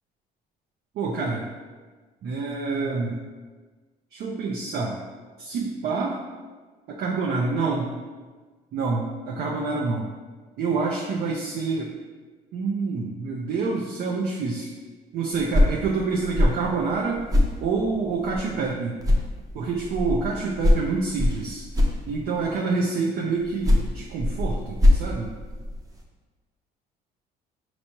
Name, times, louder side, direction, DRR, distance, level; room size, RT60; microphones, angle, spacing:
voice 1, 0.9-1.4 2.2-3.2 4.1-5.0 5.4-6.2 6.9-7.9 8.7-10.1 10.6-11.9 12.5-14.7 15.1-17.2 17.6-18.9 19.5-21.6 22.1-25.3, right 4 dB, 65° right, -2 dB, 0.6 m, -27 dB
sound 1, 15.3-18.7 19.0-22.5 23.4-26.0, left 1 dB, 20° right, 0.7 m, -24 dB
5.3 x 3.0 x 2.8 m, 1.4 s
cardioid pair, 110°, 17 cm